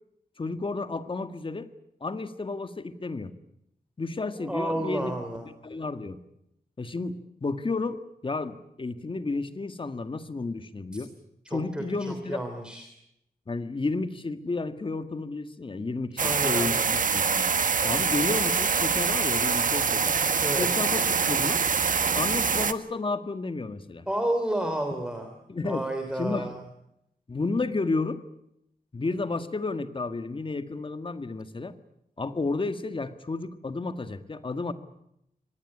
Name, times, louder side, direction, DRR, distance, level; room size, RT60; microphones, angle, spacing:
voice 1, 0.4-1.7 2.0-3.3 4.0-5.1 5.6-6.2 6.8-11.1 11.5-12.4 13.5-17.4 17.8-20.1 20.6-21.6 22.1-24.0 25.5-25.8 26.2-26.5 27.3-28.2 28.9-31.7 32.2-34.7, left 3 dB, 35° left, 10 dB, 1.7 m, -31 dB
voice 2, 4.4-5.5 11.4-12.9 16.2-16.9 20.4-20.7 24.1-25.3 25.6-26.6, right 1 dB, 5° right, 5 dB, 3.2 m, -31 dB
sound 1, 16.2-22.7, right 6 dB, 55° right, 1.3 m, -25 dB
25.0 x 19.0 x 9.7 m, 0.79 s
wide cardioid pair, 130°, 16 cm